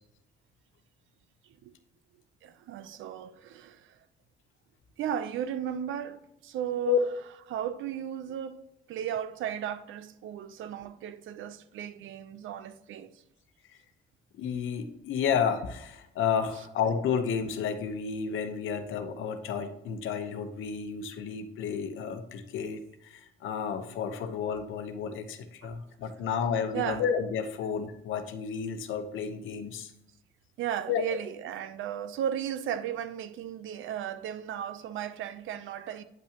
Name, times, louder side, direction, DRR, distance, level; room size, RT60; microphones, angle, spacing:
voice 1, 2.4-4.0 5.0-7.0 7.5-8.6 8.9-13.2 25.6-25.7 26.7-27.0 30.6-36.0, right 9 dB, 80° right, 0.6 m, -35 dB
voice 2, 14.3-29.9 30.9-31.0, left 7 dB, 80° left, 0.9 m, -31 dB
9.3 x 5.7 x 2.9 m
cardioid pair, 90°, 20 cm